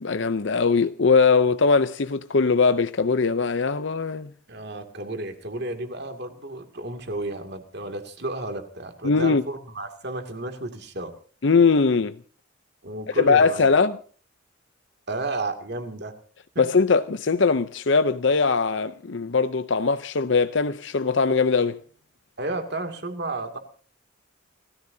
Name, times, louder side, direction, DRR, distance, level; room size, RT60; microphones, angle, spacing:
voice 1, 0.0-4.3 9.0-9.4 11.4-12.2 13.1-14.0 16.6-21.8, left 4 dB, 60° left, 0.6 m, -21 dB
voice 2, 4.5-11.1 12.8-13.7 15.1-16.1 16.5-16.7 22.4-23.6, right 2 dB, 50° right, 2.4 m, -32 dB
29.0 x 14.5 x 2.8 m
head